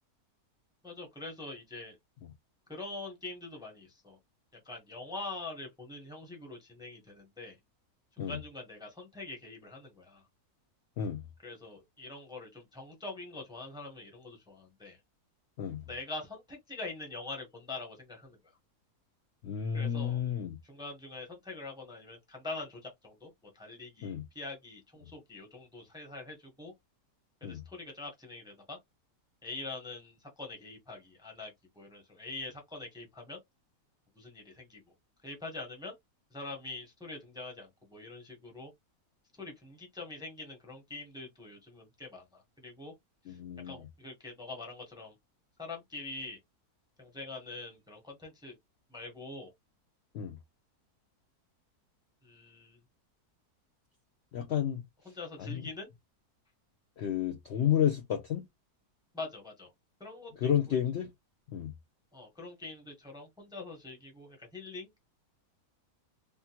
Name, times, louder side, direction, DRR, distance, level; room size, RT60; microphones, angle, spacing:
voice 1, 0.8-2.0 2.7-4.2 4.6-7.6 8.2-10.2 11.4-15.0 15.9-18.4 19.7-20.2 20.6-26.7 27.4-28.8 29.4-33.4 34.2-34.8 35.2-35.9 36.3-38.7 39.4-42.9 43.3-43.4 43.6-45.1 45.6-46.4 47.0-48.5 48.9-49.5 52.2-52.8 55.1-55.9 59.1-59.7 60.0-60.8 62.1-64.9, left 3 dB, 5° right, 0.6 m, -44 dB
voice 2, 19.4-20.6 24.0-24.2 27.4-27.6 43.3-43.9 50.1-50.4 54.3-54.8 55.4-55.7 57.0-58.4 60.4-61.1 61.5-61.7, left 9 dB, 70° left, 0.6 m, -31 dB
3.5 x 2.1 x 2.8 m
omnidirectional pair, 1.6 m